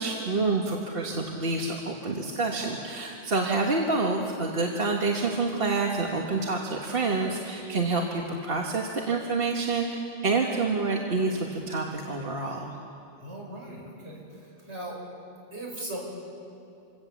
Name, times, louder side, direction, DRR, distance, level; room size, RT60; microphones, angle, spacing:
voice 1, 0.0-12.8, right 3 dB, 60° right, 0 dB, 1.6 m, -28 dB
voice 2, 13.2-15.0 15.5-16.0, right 1 dB, 85° right, -2 dB, 5.5 m, -39 dB
26.0 x 17.5 x 7.2 m, 2.7 s
omnidirectional pair, 1.1 m